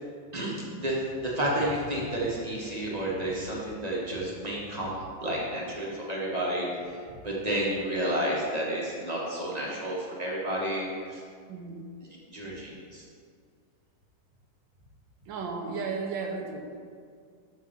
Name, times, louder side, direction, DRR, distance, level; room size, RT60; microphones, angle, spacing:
voice 1, 0.8-6.7 7.2-11.2 12.3-13.0, right 1 dB, 25° right, -5 dB, 0.8 m, -31 dB
voice 2, 11.5-11.8 15.3-16.7, right 4 dB, 70° right, 2 dB, 1.3 m, -34 dB
6.3 x 4.7 x 5.7 m, 2.1 s
omnidirectional pair, 2.3 m